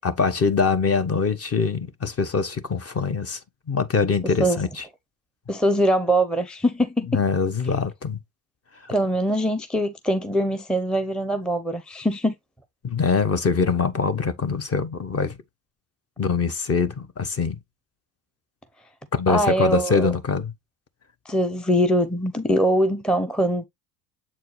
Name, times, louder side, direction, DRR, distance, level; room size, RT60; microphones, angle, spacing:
voice 1, 0.0-3.4 3.7-4.8 7.1-8.2 12.8-15.4 16.2-17.6 19.1-20.5, left 5 dB, 30° left, 1.1 m, -23 dB
voice 2, 5.5-7.1 8.9-12.3 19.3-20.1 21.3-23.6, equal, ahead, 0.7 m, -22 dB
7.4 x 4.4 x 3.1 m
hypercardioid pair, 65°, 47 cm